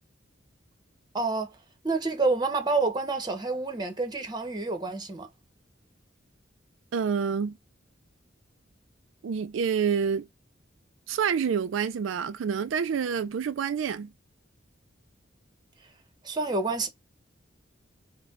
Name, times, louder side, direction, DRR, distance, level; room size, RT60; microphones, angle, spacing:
voice 1, 1.1-1.5 1.8-5.3 16.2-16.9, right 3 dB, 20° right, 1.0 m, -28 dB
voice 2, 6.9-7.6 9.2-10.3 11.1-14.1, right 6 dB, 85° right, 0.4 m, -27 dB
5.0 x 2.2 x 3.7 m
head